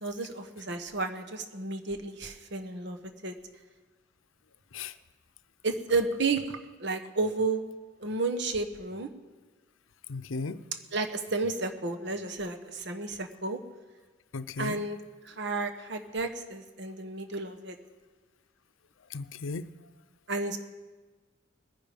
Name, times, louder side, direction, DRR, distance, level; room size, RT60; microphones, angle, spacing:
voice 1, 0.0-3.3 5.6-7.6 8.0-9.1 10.9-13.6 14.6-15.0 15.2-17.8 20.3-20.6, right 3 dB, 60° right, 6 dB, 1.2 m, -32 dB
voice 2, 10.1-10.6 14.3-14.8 19.1-19.7, left 4 dB, 90° left, 13 dB, 0.6 m, -36 dB
20.5 x 10.0 x 5.2 m, 1.3 s
head